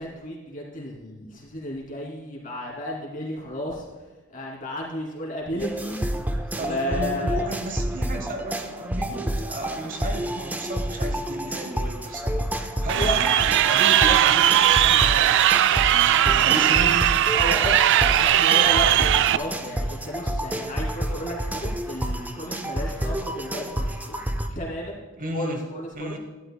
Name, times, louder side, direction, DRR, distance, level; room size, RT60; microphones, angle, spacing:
voice 1, 0.0-3.8 4.3-6.1 6.6-7.4 12.9-13.2 17.3-24.2 24.5-25.0 25.3-26.2, left 1 dB, 40° left, -4 dB, 3.0 m, -33 dB
sound 1, 5.6-24.5, right 1 dB, 10° right, 0.5 m, -29 dB
voice 2, 6.6-12.5 12.8-15.7 16.2-17.1 25.2-25.6 25.9-26.2, right 1 dB, 40° right, 4 dB, 1.1 m, -34 dB
Crowd, 12.9-19.4, right 11 dB, 60° right, 0.3 m, -19 dB
12.5 x 11.5 x 2.3 m, 1.3 s
head